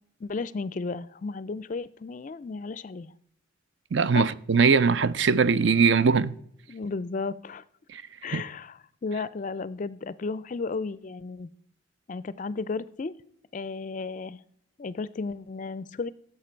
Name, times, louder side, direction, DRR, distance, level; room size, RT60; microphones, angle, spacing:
voice 1, 0.2-3.1 4.1-4.3 6.7-7.6 8.2-11.5 12.1-13.1 13.5-14.4 14.8-16.1, left 4 dB, 40° left, 0.4 m, -34 dB
voice 2, 3.9-6.3 7.9-8.0 8.3-8.4, right 5 dB, 60° right, 0.5 m, -21 dB
16.5 x 7.4 x 4.4 m
head